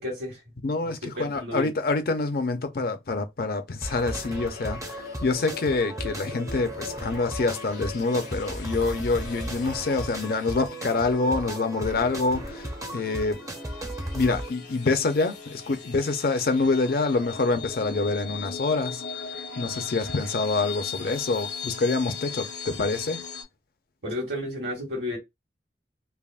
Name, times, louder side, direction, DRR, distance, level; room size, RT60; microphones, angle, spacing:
voice 1, 0.0-1.7 24.0-25.2, left 1 dB, 65° right, 1.4 m, -33 dB
voice 2, 0.6-5.0 5.2-13.4 14.1-19.0 19.6-23.2, left 3 dB, 55° left, 0.5 m, -26 dB
sound 1, 3.8-14.5, right 1 dB, 20° right, 0.5 m, -36 dB
sound 2, 4.0-23.4, left 5 dB, 75° left, 0.8 m, -39 dB
3.4 x 2.0 x 2.4 m
head